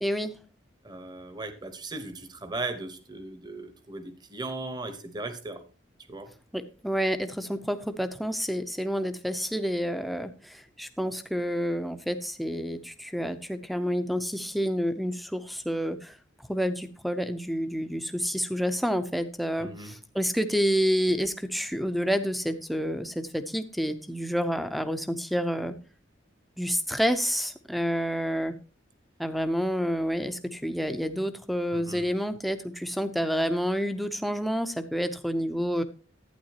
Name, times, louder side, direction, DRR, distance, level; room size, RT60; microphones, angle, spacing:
voice 1, 0.0-0.3 6.5-16.1 16.5-25.8 26.6-28.5 29.2-35.8, equal, ahead, 9 dB, 0.6 m, -29 dB
voice 2, 0.8-5.6 6.1-6.3 19.6-20.0 31.7-32.0, right 2 dB, 20° right, 10 dB, 0.9 m, -37 dB
11.5 x 9.1 x 2.8 m, 0.35 s
head